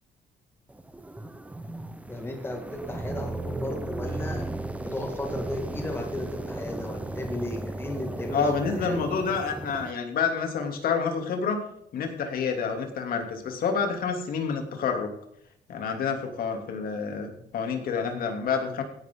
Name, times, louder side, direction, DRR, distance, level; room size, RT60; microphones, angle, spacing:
sound 1, 0.7-9.9, right 2 dB, 10° right, 0.9 m, -36 dB
voice 1, 2.1-4.5 4.8-9.0, left 1 dB, 15° left, 3 dB, 2.2 m, -35 dB
voice 2, 8.3-11.6 11.9-15.1 15.7-18.8, left 5 dB, 60° left, 4 dB, 3.1 m, -28 dB
16.0 x 10.5 x 3.9 m, 0.73 s
cardioid pair, 110°, 17 cm